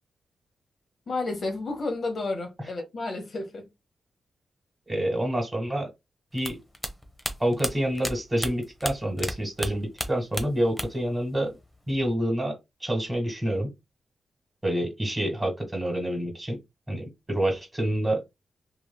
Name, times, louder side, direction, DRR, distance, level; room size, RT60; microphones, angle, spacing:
voice 1, 1.1-3.7, left 2 dB, 60° left, 1.1 m, -31 dB
voice 2, 4.9-5.9 6.3-6.6 7.4-11.5 11.9-13.7 14.6-16.6 16.9-18.3, right 1 dB, 25° right, 1.9 m, -27 dB
sound 1, 6.4-9.3 9.6-11.1 11.4-12.1, left 1 dB, 10° left, 0.9 m, -33 dB
3.1 x 2.6 x 2.3 m
cardioid pair, 55°, 0 cm